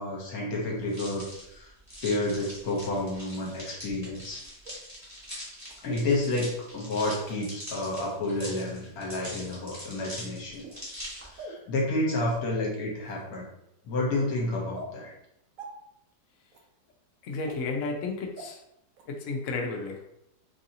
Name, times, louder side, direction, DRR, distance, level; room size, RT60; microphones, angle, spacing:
voice 1, 0.0-1.7 2.0-4.4 5.8-10.6 11.2-13.4 13.9-15.1, left 2 dB, 60° left, -2 dB, 1.2 m, -30 dB
sound 1, 0.9-11.4, equal, 10° right, 0.9 m, -43 dB
sound 2, 4.6-4.8 5.6-5.7 7.1-7.4 8.4-8.6 9.3-9.6 10.5-10.8 11.4-11.6 12.3-12.4 13.0-13.3 14.0-14.1 14.7-14.9 15.6-15.7 16.5-16.6 17.4-17.6 18.4-18.5 19.0-19.1, right 3 dB, 75° right, 0.7 m, -42 dB
voice 2, 17.2-18.6 19.0-20.0, left 3 dB, 85° left, 1 dB, 0.6 m, -32 dB
3.1 x 2.7 x 2.7 m, 0.79 s
omnidirectional pair, 1.9 m